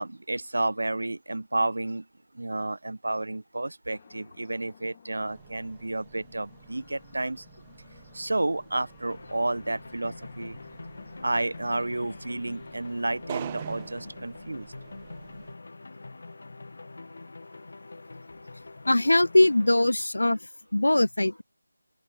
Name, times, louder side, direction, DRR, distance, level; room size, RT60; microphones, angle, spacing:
voice 1, 0.0-2.0 2.3-7.4 8.1-10.6 11.2-14.7, right 2 dB, 70° right, 1.0 m, -31 dB
sound 1, 3.9-14.7, left 7 dB, 25° left, 2.8 m, -57 dB
sound 2, 5.2-15.6, right 11 dB, 15° right, 3.3 m, -46 dB
sound 3, 9.1-19.8, left 3 dB, 50° left, 3.3 m, -45 dB
voice 2, 18.9-20.4 20.7-21.4, left 1 dB, 80° left, 0.5 m, -21 dB
open air
figure-of-eight pair, 170°, 0 cm